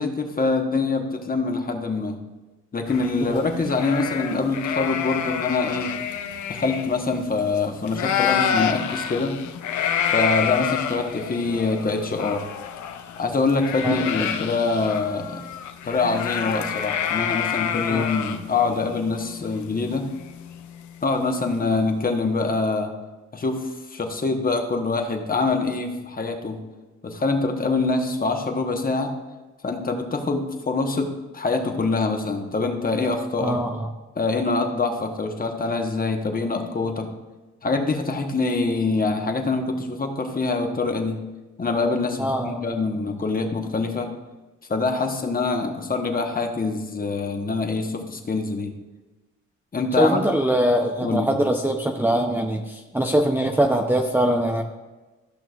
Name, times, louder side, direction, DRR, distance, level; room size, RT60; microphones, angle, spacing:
voice 1, 0.0-2.2 2.7-5.9 6.5-9.4 10.1-12.4 13.2-15.5 15.8-20.1 21.0-22.9 23.3-26.6 27.0-29.1 29.6-33.6 34.1-37.1 37.6-41.2 41.6-44.1 44.7-48.7 49.7-50.2 51.0-51.3, left 3 dB, 30° left, 4 dB, 1.1 m, -24 dB
sound 1, 2.9-7.6 7.9-20.8, left 8 dB, 70° left, 0.7 m, -28 dB
voice 2, 33.4-33.9 42.2-42.6 50.0-54.6, right 1 dB, 5° right, 1 dB, 0.6 m, -22 dB
14.0 x 6.1 x 2.4 m, 1.2 s
cardioid pair, 90°, 30 cm